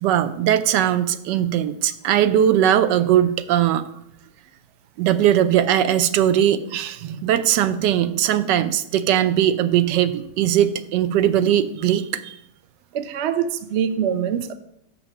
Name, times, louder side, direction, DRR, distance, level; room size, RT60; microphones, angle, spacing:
voice 1, 0.0-3.8 5.0-12.4, right 10 dB, 85° right, 12 dB, 1.2 m, -19 dB
voice 2, 12.9-14.5, right 8 dB, 65° right, 10 dB, 0.6 m, -24 dB
6.5 x 5.9 x 6.4 m, 0.76 s
omnidirectional pair, 1.8 m